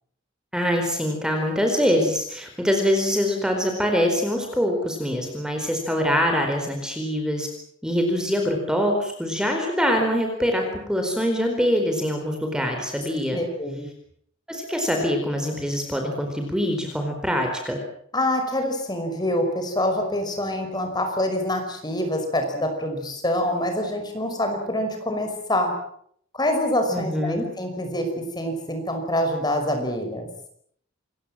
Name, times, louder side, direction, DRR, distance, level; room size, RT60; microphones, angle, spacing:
voice 1, 0.5-7.5 7.8-13.4 14.5-17.8 26.9-27.4, equal, 5° right, 3 dB, 4.4 m, -24 dB
voice 2, 13.3-13.9 18.1-25.7 26.3-28.1 28.4-30.3, left 1 dB, 20° left, 5 dB, 5.5 m, -25 dB
28.0 x 22.5 x 7.6 m, 0.66 s
head